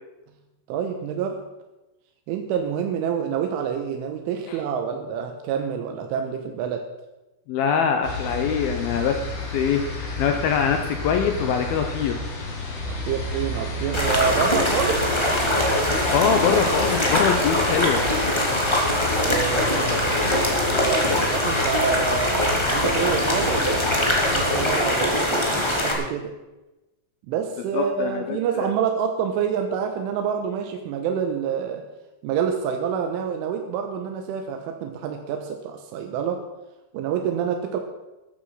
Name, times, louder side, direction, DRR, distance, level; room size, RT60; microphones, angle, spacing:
voice 1, 0.7-1.4 2.3-6.9 12.9-15.1 19.2-26.3 27.3-31.8 32.2-36.4 36.9-37.8, right 7 dB, 80° right, 4 dB, 3.5 m, -27 dB
voice 2, 7.5-9.2 9.5-12.2 16.1-18.0 27.7-28.7, left 7 dB, 80° left, 5 dB, 2.2 m, -23 dB
sound 1, 8.0-24.7, left 2 dB, 60° left, 5.8 m, -31 dB
sound 2, 13.9-25.9, left 1 dB, 25° left, 0.5 m, -22 dB
14.0 x 12.0 x 5.7 m, 1.0 s
omnidirectional pair, 5.7 m